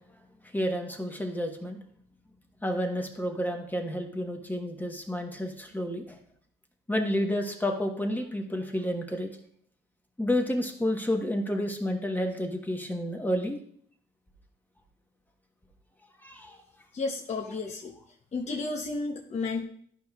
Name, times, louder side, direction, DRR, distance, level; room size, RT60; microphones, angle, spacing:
voice 1, 0.5-1.8 2.6-6.2 6.9-9.3 10.2-13.6 16.2-16.6, left 1 dB, 10° left, 2 dB, 1.1 m, -30 dB
voice 2, 16.9-17.9 18.3-19.6, left 3 dB, 35° left, 1 dB, 0.8 m, -32 dB
12.0 x 5.1 x 2.4 m, 0.62 s
cardioid pair, 90°, 20 cm